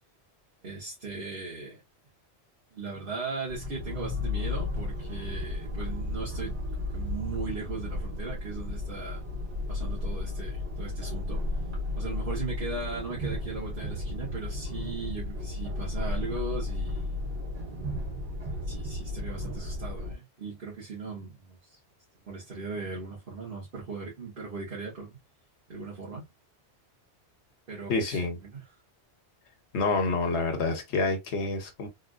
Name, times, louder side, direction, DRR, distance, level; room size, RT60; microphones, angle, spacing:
voice 1, 0.6-1.8 2.7-9.2 9.7-11.4 11.9-17.2 18.7-21.8 22.2-25.2 25.7-26.3 27.7-28.6, right 4 dB, 55° right, 1.4 m, -38 dB
sound 1, 3.5-20.1, left 2 dB, 75° right, 1.9 m, -34 dB
voice 2, 27.9-28.4 29.7-31.9, left 3 dB, 80° left, 1.2 m, -28 dB
3.6 x 2.5 x 2.4 m
omnidirectional pair, 1.1 m